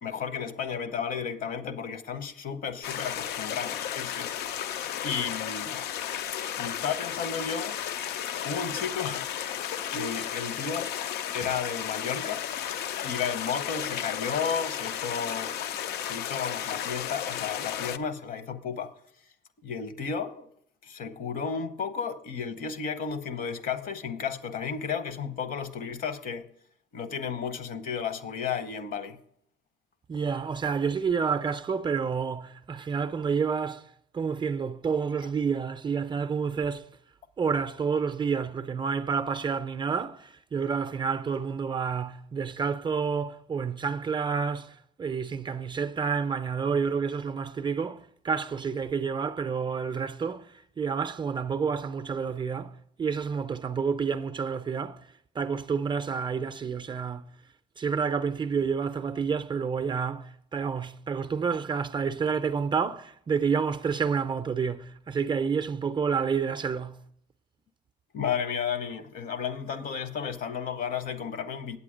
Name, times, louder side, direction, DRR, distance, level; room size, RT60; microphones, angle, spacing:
voice 1, 0.0-4.6 5.0-5.8 6.6-7.8 8.4-10.9 11.3-12.5 13.0-15.5 16.0-18.9 19.6-20.5 20.8-26.5 26.9-29.2 35.2-35.3 68.1-71.8, left 6 dB, 55° left, 0.9 m, -33 dB
sound 1, 2.8-18.0, left 10 dB, 80° left, 0.5 m, -34 dB
voice 2, 30.1-33.8 34.1-36.9 37.4-52.7 53.0-55.0 55.4-57.3 57.8-67.0, right 6 dB, 25° right, 0.4 m, -29 dB
8.4 x 8.2 x 5.0 m
cardioid pair, 110°, 17 cm